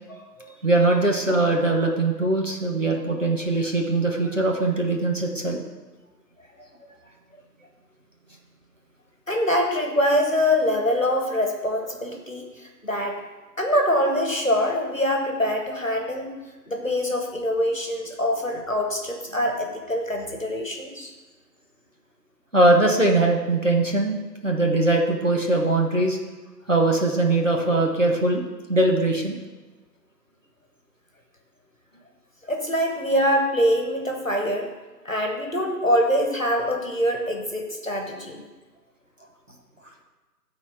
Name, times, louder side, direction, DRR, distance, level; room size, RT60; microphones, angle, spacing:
voice 1, 0.1-0.5 9.3-13.2 13.6-16.3 16.7-21.1 32.5-34.7 35.0-38.4, equal, 50° left, 2 dB, 1.3 m, -24 dB
voice 2, 0.6-5.6 18.5-18.6 22.5-24.1 24.4-26.2 26.7-28.4 28.7-29.4, right 2 dB, 50° right, 0 dB, 1.1 m, -21 dB
12.0 x 4.2 x 5.5 m, 1.2 s
figure-of-eight pair, 175°, 50 cm